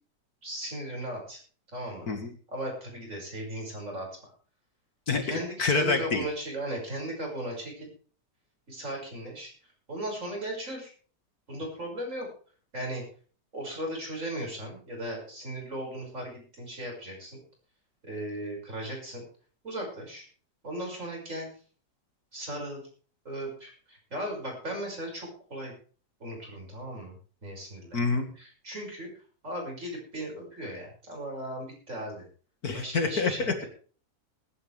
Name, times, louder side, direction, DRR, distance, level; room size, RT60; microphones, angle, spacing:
voice 1, 0.4-1.4 1.7-2.1 2.5-4.1 5.2-7.9 8.7-9.5 9.9-10.9 11.5-12.3 12.7-13.0 13.5-17.4 18.0-19.2 19.6-20.2 20.6-21.5 22.3-22.8 23.2-25.7 26.2-27.1 27.4-28.1 28.4-29.1 29.4-32.2 32.7-33.7, right 1 dB, 45° right, 0 dB, 6.6 m, -37 dB
voice 2, 5.1-6.3 27.9-28.2 32.6-33.6, left 4 dB, 55° left, 5 dB, 2.3 m, -27 dB
21.0 x 11.0 x 3.5 m, 0.41 s
omnidirectional pair, 1.9 m